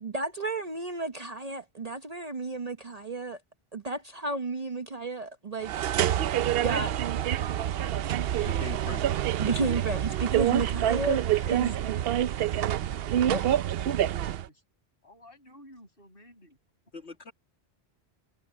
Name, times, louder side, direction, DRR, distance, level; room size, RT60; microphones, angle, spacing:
voice 1, 0.0-3.4 3.7-5.7 6.5-6.9 8.4-8.5 9.4-11.8 13.2-13.6, right 3 dB, 40° right, 0.9 m, -32 dB
Sanisette wash cycle message, 5.6-14.5, right 11 dB, 70° right, 0.7 m, -27 dB
voice 2, 8.4-9.0 16.9-17.3, left 4 dB, 85° left, 2.4 m, -41 dB
voice 3, 10.0-13.4 14.0-14.6 15.0-16.6, left 1 dB, 55° left, 7.4 m, -55 dB
omnidirectional pair, 1.1 m